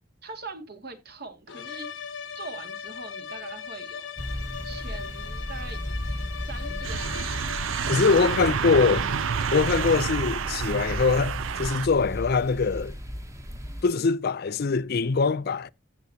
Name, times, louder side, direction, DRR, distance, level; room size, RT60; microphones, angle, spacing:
voice 1, 0.2-2.1 2.3-4.1 4.6-6.2 6.5-7.4 7.8-8.4, right 3 dB, 55° right, 2.0 m, -42 dB
sound 1, 1.5-10.7, left 7 dB, 70° left, 1.0 m, -39 dB
sound 2, 4.2-13.8, equal, 15° right, 1.3 m, -35 dB
sound 3, 6.8-11.9, right 7 dB, 85° right, 0.5 m, -29 dB
voice 2, 7.9-9.1 9.5-12.9 13.8-15.7, left 4 dB, 55° left, 0.5 m, -23 dB
14.5 x 7.0 x 2.8 m
head